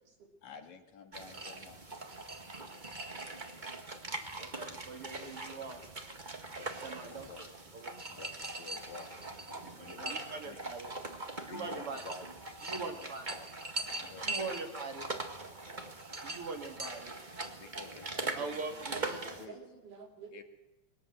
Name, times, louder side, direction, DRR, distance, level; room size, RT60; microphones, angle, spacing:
voice 1, 0.4-1.8 6.6-7.5 8.1-10.6 11.4-12.3 12.6-13.5 13.9-14.7 17.5-19.6 20.3-20.4, left 6 dB, 65° left, 5 dB, 3.1 m, -52 dB
sound 1, 1.1-19.4, right 2 dB, 25° right, 1.2 m, -41 dB
voice 2, 4.4-5.8 6.8-7.9 9.6-10.9 11.4-12.0 12.6-13.3 14.2-15.1 16.2-17.2 18.3-18.7 19.0-19.2, right 4 dB, 45° right, 5 dB, 3.1 m, -42 dB
voice 3, 18.9-20.4, right 5 dB, 80° right, 1 dB, 5.3 m, -50 dB
21.5 x 18.0 x 7.9 m, 0.97 s
omnidirectional pair, 3.6 m